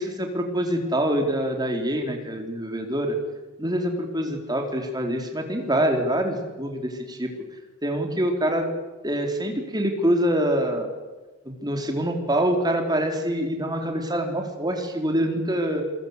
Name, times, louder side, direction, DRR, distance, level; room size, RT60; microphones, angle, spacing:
voice 1, 0.0-3.2 3.6-7.3 7.8-8.7 9.0-10.9 11.5-15.8, right 1 dB, 20° right, 4 dB, 4.0 m, -25 dB
27.5 x 22.5 x 8.2 m, 1.3 s
head